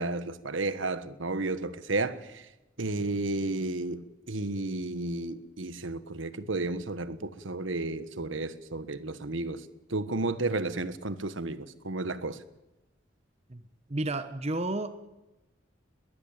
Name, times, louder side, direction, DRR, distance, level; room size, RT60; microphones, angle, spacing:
voice 1, 0.0-2.5 2.8-12.4, right 2 dB, 80° right, 1.4 m, -32 dB
voice 2, 13.9-15.0, right 2 dB, 35° right, 1.1 m, -31 dB
21.0 x 16.0 x 8.9 m
head